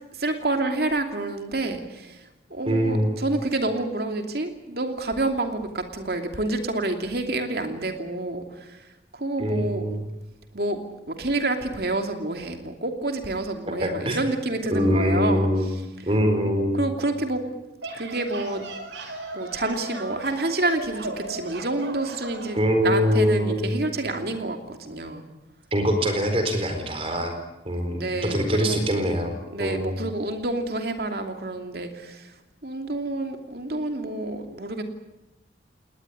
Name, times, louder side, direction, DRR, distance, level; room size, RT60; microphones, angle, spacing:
voice 1, 0.1-8.9 9.1-9.8 10.5-10.8 11.1-15.5 16.4-17.4 18.0-18.6 19.0-19.1 19.3-25.3 27.9-28.8 29.5-32.3 32.6-34.8, right 2 dB, 55° right, 5 dB, 2.8 m, -28 dB
voice 2, 2.7-3.2 9.4-10.0 13.8-14.2 14.7-15.7 16.1-16.9 22.5-23.8 25.7-27.4 27.6-29.3 29.6-30.0, equal, 30° right, 6 dB, 4.3 m, -23 dB
sound 1, 17.6-22.6, right 2 dB, 90° right, 4.9 m, -37 dB
19.5 x 19.5 x 9.8 m, 0.99 s
head